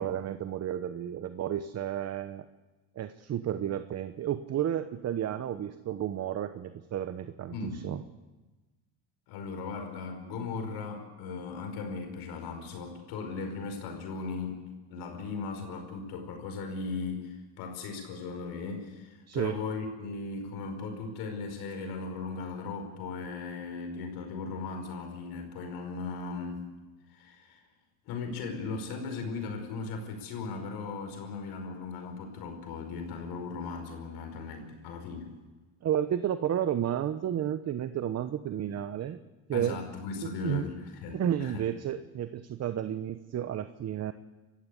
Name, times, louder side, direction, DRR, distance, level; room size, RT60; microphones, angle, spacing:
voice 1, 0.0-2.5 2.9-8.0 19.3-19.6 35.8-39.2 39.5-39.8 40.4-40.7 41.1-44.1, right 10 dB, 40° right, 11 dB, 1.0 m, -32 dB
voice 2, 7.5-7.8 9.3-14.6 14.9-26.7 27.1-27.6 28.1-35.3 39.5-41.6, left 4 dB, 75° left, 5 dB, 5.3 m, -37 dB
27.0 x 15.0 x 8.3 m, 1.2 s
cardioid pair, 110°, 39 cm